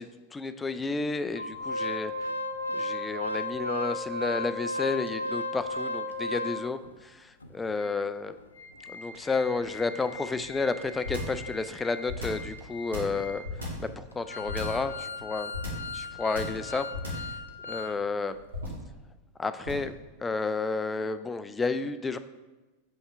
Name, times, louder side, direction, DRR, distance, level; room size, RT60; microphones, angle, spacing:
voice 1, 0.0-2.1 2.7-8.3 8.9-13.4 13.8-14.9 15.2-15.5 15.9-17.2 17.6-18.3 19.4-19.9 20.2-22.2, left 4 dB, 15° left, 11 dB, 0.3 m, -31 dB
Organ, 1.3-6.9 7.4-7.5 7.8-7.9 8.4-18.0 18.3-18.4, left 2 dB, 80° left, 0.5 m, -36 dB
sound 1, 11.0-11.4 12.0-12.5 12.9-13.9 14.5-14.9 15.5-15.9 16.3-16.6 16.9-17.3 18.5-18.9 19.6-19.9, left 1 dB, 75° right, 2.0 m, -35 dB
6.5 x 5.4 x 3.4 m, 1.2 s
figure-of-eight pair, 90°, 0 cm